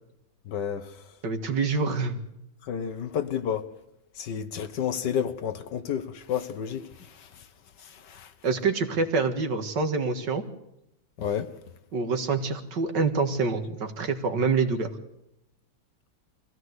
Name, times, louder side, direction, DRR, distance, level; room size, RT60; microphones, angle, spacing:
voice 1, 0.5-0.9 2.7-3.7 4.2-6.9 8.1-8.3 11.2-11.5, left 8 dB, 65° left, 1.6 m, -30 dB
voice 2, 1.2-2.2 8.4-10.4 11.9-14.9, right 4 dB, 65° right, 2.3 m, -26 dB
23.5 x 16.0 x 8.0 m
omnidirectional pair, 2.1 m